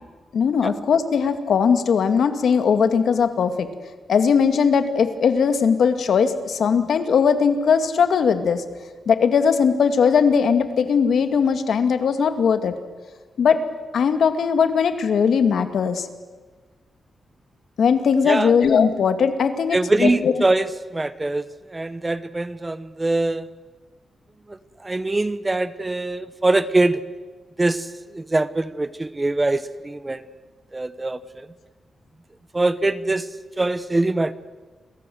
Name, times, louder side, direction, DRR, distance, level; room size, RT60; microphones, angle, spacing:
voice 1, 0.3-3.7 4.1-8.6 9.1-12.7 13.4-13.6 13.9-16.1 17.8-20.3, left 6 dB, 70° left, 9 dB, 2.2 m, -19 dB
voice 2, 19.7-21.4 21.7-23.5 24.8-27.0 27.6-27.9 28.1-30.2 30.7-31.2 32.5-33.3 33.6-34.3, right 2 dB, 15° right, 15 dB, 0.8 m, -22 dB
30.0 x 23.5 x 7.9 m, 1.3 s
wide cardioid pair, 155°, 0 cm